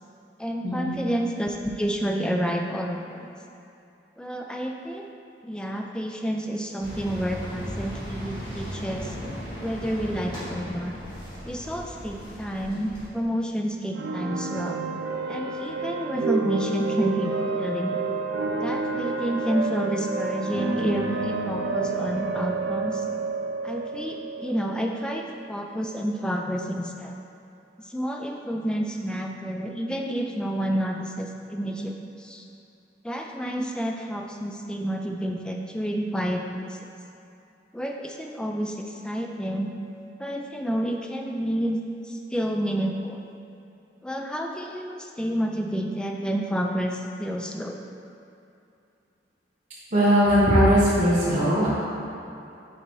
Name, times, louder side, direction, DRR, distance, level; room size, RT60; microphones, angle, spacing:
voice 1, 0.4-3.3 4.2-5.1 5.4-9.2 9.6-10.9 11.5-14.8 15.3-18.0 18.6-23.0 23.6-27.2 27.9-32.4 33.0-36.8 37.7-39.7 40.2-43.2 44.0-47.8, equal, 5° left, 2 dB, 0.3 m, -29 dB
sound 1, 6.8-13.1, equal, 25° left, 1.4 m, -36 dB
sound 2, 13.9-25.6, right 3 dB, 75° right, 0.4 m, -29 dB
voice 2, 49.9-51.7, equal, 40° right, -13 dB, 1.3 m, -19 dB
6.6 x 4.8 x 3.1 m, 2.8 s
head